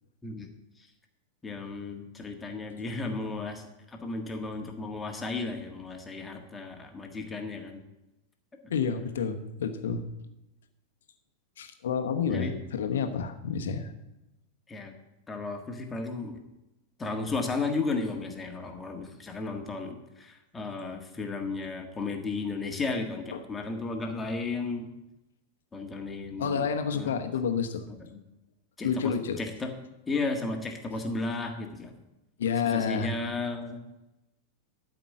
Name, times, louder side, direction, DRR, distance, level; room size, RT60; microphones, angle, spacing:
voice 1, 1.4-7.8 12.3-12.5 14.7-14.9 15.3-16.4 17.0-24.9 25.7-27.2 27.9-28.2 28.8-29.7 30.1-32.0 32.6-33.8, left 3 dB, 15° left, 3 dB, 1.6 m, -34 dB
voice 2, 8.7-10.1 11.6-13.9 23.3-23.4 26.4-27.8 28.8-29.4 32.4-33.1, left 6 dB, 60° left, 8 dB, 1.1 m, -29 dB
12.5 x 5.2 x 7.4 m, 0.94 s
figure-of-eight pair, 90°, 0 cm